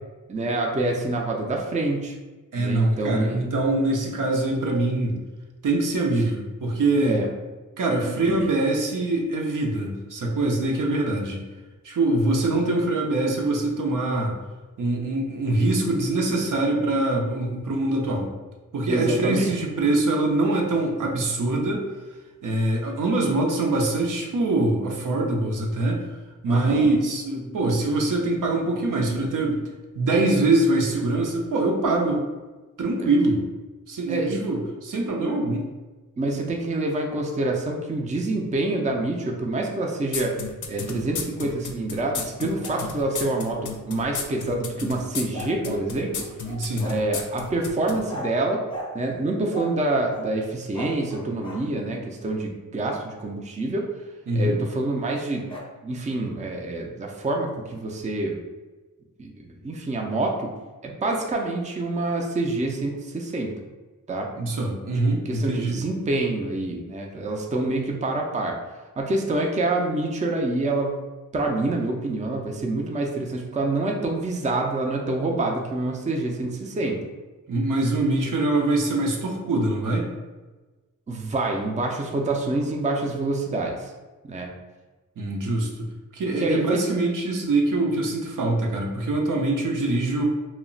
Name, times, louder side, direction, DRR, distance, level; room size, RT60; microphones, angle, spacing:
voice 1, 0.3-2.1 2.6-3.4 7.0-7.3 8.3-8.4 18.9-19.5 26.5-26.9 34.1-34.4 36.2-40.3 40.7-46.3 46.8-48.6 48.9-53.9 54.4-55.5 55.8-58.4 59.2-60.5 60.8-63.5 64.1-64.3 65.3-68.6 69.0-71.0 71.3-77.0 81.1-83.9 84.2-84.5 86.4-86.8, right 2 dB, 20° right, 1 dB, 0.4 m, -26 dB
voice 2, 2.5-5.2 5.6-7.2 7.8-11.4 11.8-14.4 14.8-18.3 18.7-21.8 22.4-26.2 26.4-29.6 30.0-32.2 32.8-33.4 33.9-35.7 46.5-46.9 54.3-54.6 64.4-65.8 77.5-80.1 85.2-85.9 86.1-90.2, right 2 dB, 65° right, 0 dB, 0.6 m, -23 dB
sound 1, 40.1-48.0, left 6 dB, 60° left, 0.5 m, -32 dB
sound 2, 42.6-44.4 45.3-47.1 48.1-48.4 48.7-49.0 49.5-49.8 50.1-51.7 55.5-55.6, equal, 15° left, 0.8 m, -38 dB
2.2 x 2.1 x 3.8 m, 1.2 s
cardioid pair, 55°, 34 cm